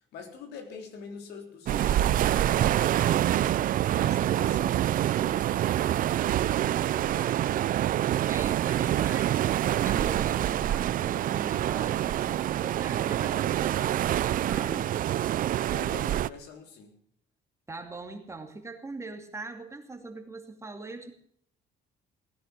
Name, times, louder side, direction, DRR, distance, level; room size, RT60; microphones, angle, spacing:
voice 1, 0.1-3.6 3.9-7.6 15.6-17.0, left 6 dB, 80° left, 4 dB, 3.6 m, -46 dB
sound 1, 1.7-16.3, right 12 dB, 55° right, 0.5 m, -26 dB
voice 2, 8.3-9.5 9.8-15.0 17.7-21.1, right 3 dB, 15° right, 4 dB, 2.6 m, -41 dB
17.5 x 10.5 x 6.7 m, 0.63 s
cardioid pair, 110°, 17 cm